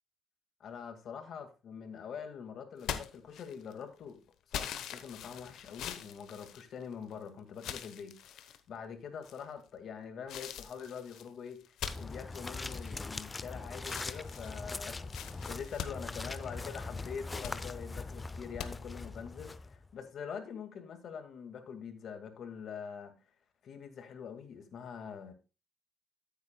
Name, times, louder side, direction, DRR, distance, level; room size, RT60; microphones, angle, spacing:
voice 1, 0.6-4.2 4.5-23.1 23.6-25.3, left 7 dB, 65° left, 2.0 m, -44 dB
sound 1, 2.8-3.8 4.5-7.1 7.6-8.6 9.2-9.7 10.3-13.5 13.8-16.8 17.2-17.6 18.6-18.7, left 9 dB, 80° left, 0.9 m, -43 dB
sound 2, 11.8-19.9, left 3 dB, 25° left, 0.6 m, -41 dB
14.0 x 8.2 x 2.3 m
cardioid pair, 90°, 0 cm